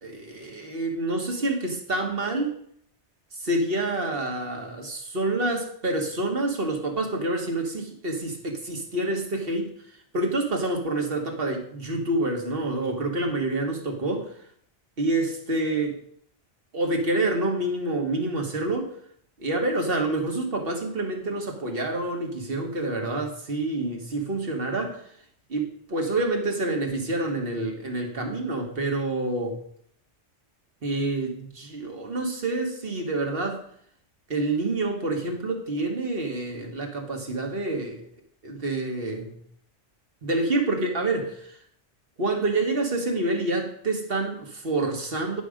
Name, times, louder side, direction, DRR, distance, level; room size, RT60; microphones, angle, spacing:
voice 1, 0.0-2.5 3.3-9.7 10.1-14.3 15.0-16.0 16.7-18.9 19.4-25.1 25.5-29.6 30.8-33.6 34.3-38.0 38.4-39.4 40.2-41.6 42.2-45.4, right 2 dB, 55° right, 3 dB, 1.7 m, -27 dB
10.0 x 5.7 x 5.1 m, 0.64 s
omnidirectional pair, 1.2 m